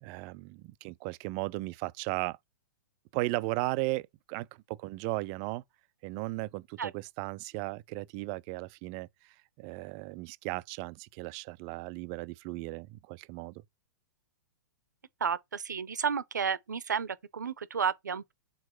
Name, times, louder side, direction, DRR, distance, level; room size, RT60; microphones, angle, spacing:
voice 1, 0.0-2.4 3.1-5.6 6.0-13.6, right 21 dB, 30° right, 0.4 m, -36 dB
voice 2, 15.2-18.3, right 6 dB, 65° right, 0.7 m, -32 dB
6.3 x 4.1 x 5.6 m
figure-of-eight pair, 110°, 10 cm